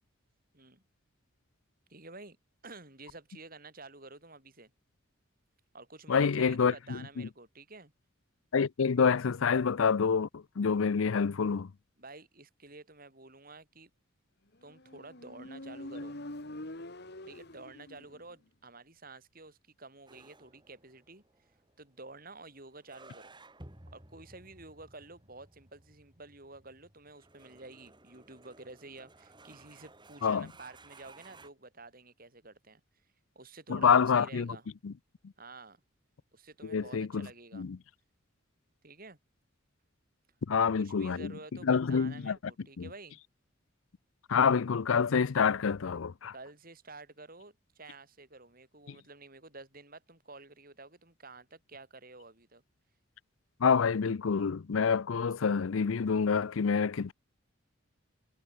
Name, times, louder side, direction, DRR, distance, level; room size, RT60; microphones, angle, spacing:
voice 1, 1.9-2.4 2.6-4.7 5.7-7.9 12.0-13.9 14.6-16.2 17.3-21.5 21.8-23.3 23.9-32.8 33.3-34.7 35.4-35.8 36.3-37.7 38.8-39.2 40.5-43.2 46.3-52.6, right 3 dB, 45° right, 6.4 m, -50 dB
voice 2, 6.1-7.3 8.5-11.7 30.2-30.5 33.7-34.6 34.8-34.9 36.6-37.3 37.5-37.8 40.5-41.3 41.6-42.4 42.8-42.9 44.3-46.3 48.9-49.0 53.6-57.1, left 6 dB, 75° left, 0.5 m, -27 dB
Motorcycle, 14.7-18.3, left 1 dB, 55° left, 2.4 m, -44 dB
sound 1, 20.1-31.5, right 2 dB, 20° right, 3.0 m, -57 dB
head